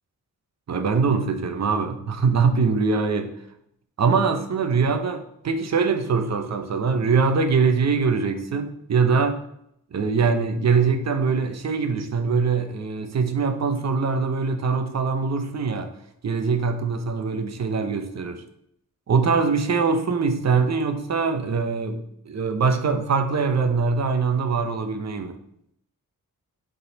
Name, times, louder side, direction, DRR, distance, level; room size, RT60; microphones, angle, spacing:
voice 1, 0.7-3.3 4.0-9.4 9.9-15.9 16.2-18.3 19.1-22.0 22.2-25.4, right 5 dB, 50° right, 7 dB, 0.9 m, -23 dB
6.9 x 4.0 x 5.2 m, 0.75 s
wide cardioid pair, 115°, 33 cm